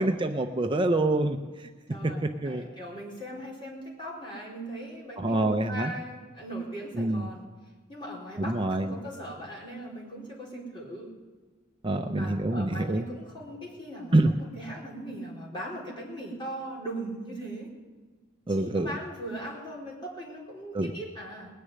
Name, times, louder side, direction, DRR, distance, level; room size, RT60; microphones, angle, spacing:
voice 1, 0.0-1.4 2.4-2.6 5.2-5.9 7.0-7.2 8.4-8.9 11.8-13.0 14.1-14.3 18.5-18.9 20.7-20.9, right 2 dB, 25° right, 5 dB, 0.6 m, -25 dB
voice 2, 1.9-7.4 7.9-11.1 11.9-17.7 18.5-21.5, right 1 dB, 25° left, -4 dB, 4.5 m, -39 dB
20.0 x 6.8 x 9.4 m, 1.4 s
head